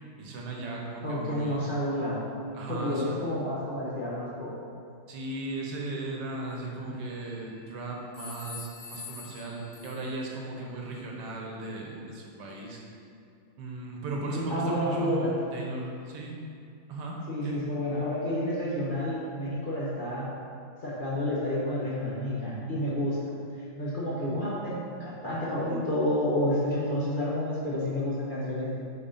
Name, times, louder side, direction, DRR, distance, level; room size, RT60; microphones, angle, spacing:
voice 1, 0.2-1.6 2.5-3.2 5.1-12.8 13.6-16.4 16.9-17.6, right 2 dB, 70° right, -1 dB, 1.5 m, -36 dB
voice 2, 1.0-2.2 2.7-4.5 6.9-7.0 14.3-15.3 17.3-20.3 20.8-23.2 23.6-28.8, left 1 dB, 40° left, -8 dB, 0.8 m, -30 dB
sound 1, 6.9-7.6 8.1-10.3, left 5 dB, 80° left, 2.3 m, -45 dB
8.1 x 4.7 x 3.8 m, 2.4 s
omnidirectional pair, 2.0 m